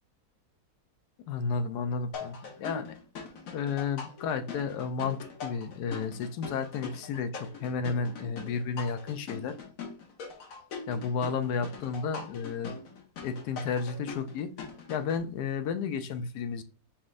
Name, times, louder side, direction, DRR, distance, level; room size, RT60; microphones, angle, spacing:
voice 1, 1.3-3.0 3.5-9.6 10.9-12.7 13.2-14.5 14.9-16.6, left 5 dB, 90° left, 1.2 m, -32 dB
sound 1, 2.1-15.2, left 4 dB, 65° left, 1.2 m, -42 dB
5.0 x 3.5 x 2.4 m
omnidirectional pair, 1.7 m